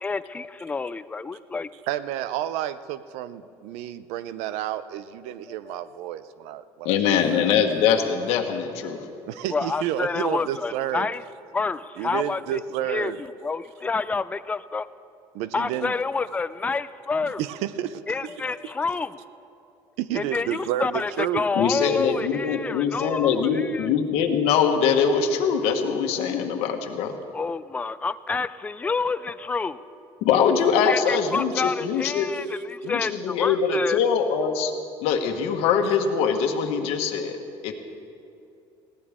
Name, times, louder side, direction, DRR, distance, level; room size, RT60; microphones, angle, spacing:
voice 1, 0.0-1.7 5.7-5.8 9.5-11.2 11.5-12.6 12.9-13.1 13.4-14.9 15.5-17.4 18.1-19.2 20.1-23.9 26.4-26.5 27.3-29.8 30.8-34.0, left 4 dB, 15° left, 15 dB, 0.3 m, -28 dB
voice 2, 1.9-7.8 9.3-11.1 12.0-13.2 15.3-15.9 17.2-18.3 18.6-18.7 20.0-21.5, right 12 dB, 80° right, 14 dB, 0.6 m, -30 dB
voice 3, 6.8-9.0 21.6-27.1 30.2-32.3 32.8-34.7 35.0-37.4 37.6-37.7, left 7 dB, 70° left, 4 dB, 1.4 m, -23 dB
19.5 x 16.5 x 3.6 m, 2.6 s
cardioid pair, 150°, 11 cm